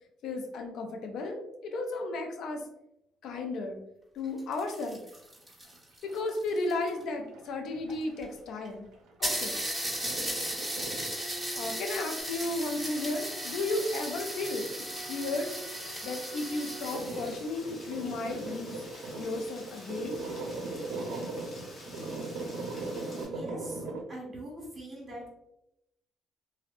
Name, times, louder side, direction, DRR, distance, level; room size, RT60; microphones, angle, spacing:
voice 1, 0.2-2.6 3.2-3.8 4.1-5.0 6.0-8.9 9.2-9.6 11.6-14.7 15.1-15.5 16.0-18.8 19.2-20.2, left 2 dB, 75° left, 3 dB, 0.4 m, -34 dB
sound 1, 4.2-7.0 7.9-8.0 8.2-8.3 8.6-8.7 9.2-17.4, right 1 dB, 5° right, 1.4 m, -36 dB
sound 2, 5.1-6.3 6.5-8.3 8.7-12.0 12.3-12.4 12.9-13.2 13.4-13.5 13.8-14.3 14.6-24.0, right 2 dB, 85° right, 0.4 m, -39 dB
Rain, 12.2-23.3, left 1 dB, 45° left, 0.8 m, -49 dB
voice 2, 23.3-23.8 24.1-25.3, right 1 dB, 40° right, -3 dB, 1.3 m, -42 dB
2.6 x 2.1 x 2.4 m, 0.84 s
supercardioid pair, 70°, 0 cm